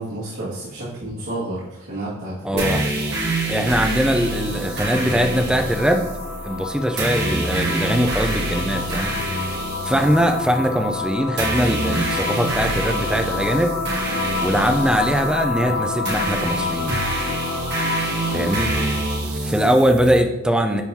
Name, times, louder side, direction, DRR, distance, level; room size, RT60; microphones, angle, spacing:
voice 1, 0.0-2.6 18.3-19.0, right 2 dB, 85° right, -12 dB, 2.2 m, -31 dB
voice 2, 2.4-2.8 3.5-6.1 6.4-9.1 9.8-13.7 14.4-17.0 18.3-18.7 19.2-20.8, equal, 5° right, 4 dB, 0.5 m, -21 dB
sound 1, 2.6-20.2, right 2 dB, 50° right, 1.6 m, -27 dB
sound 2, 2.8-19.4, left 4 dB, 60° left, 0.9 m, -30 dB
10.5 x 3.7 x 2.8 m, 1.0 s
head